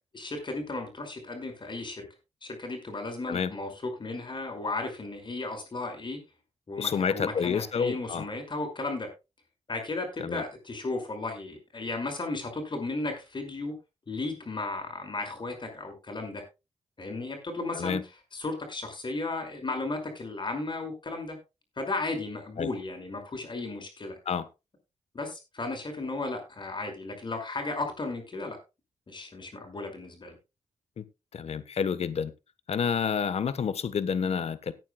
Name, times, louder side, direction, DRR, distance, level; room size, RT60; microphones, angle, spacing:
voice 1, 0.1-2.1 2.4-6.2 6.7-9.1 9.7-13.7 14.1-16.4 17.0-18.0 18.3-21.4 21.8-24.2 25.1-28.6 29.1-30.4, left 2 dB, 40° left, 5 dB, 5.4 m, -35 dB
voice 2, 6.8-8.2 10.2-10.4 17.7-18.0 22.6-22.7 24.3-24.5 31.0-31.1 31.3-32.3 32.7-34.7, left 6 dB, 65° left, 14 dB, 1.2 m, -29 dB
18.5 x 9.2 x 2.3 m, 0.26 s
cardioid pair, 75°, 12 cm